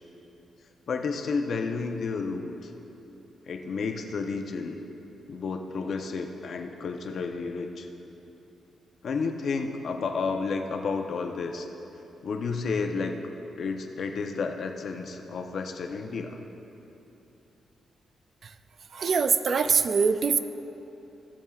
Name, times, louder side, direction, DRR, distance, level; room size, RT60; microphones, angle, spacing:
voice 1, 0.9-2.7 3.5-4.8 5.3-7.9 9.0-11.7 12.2-13.1 13.6-16.4, left 4 dB, 55° left, 4 dB, 0.7 m, -31 dB
voice 2, 18.9-20.4, right 5 dB, 50° right, 10 dB, 0.3 m, -23 dB
17.5 x 7.2 x 2.4 m, 3.0 s
cardioid pair, 130°, 0 cm